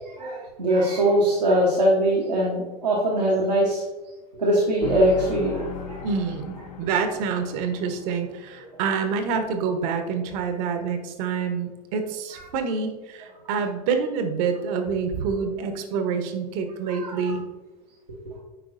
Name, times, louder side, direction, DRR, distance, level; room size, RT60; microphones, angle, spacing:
voice 1, 0.2-3.8 4.4-6.1 16.9-17.3, right 1 dB, 90° right, -5 dB, 1.1 m, -22 dB
sound 1, 4.8-8.9, left 7 dB, 65° left, 0.8 m, -37 dB
voice 2, 6.0-17.4, right 5 dB, 60° right, 7 dB, 1.0 m, -27 dB
9.3 x 4.6 x 2.6 m, 1.2 s
hypercardioid pair, 80°, 21 cm